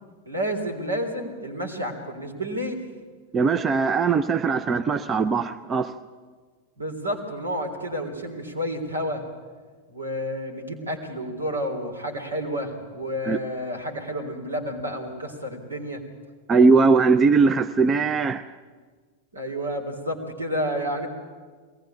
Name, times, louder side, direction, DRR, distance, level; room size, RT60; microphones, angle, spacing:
voice 1, 0.3-2.8 6.8-9.3 9.9-16.0 19.3-21.1, equal, 80° right, 3.5 m, -30 dB
voice 2, 3.3-5.9 13.2-13.4 16.5-18.5, right 4 dB, 25° right, 0.6 m, -20 dB
22.0 x 18.5 x 8.9 m
figure-of-eight pair, 90°, 0 cm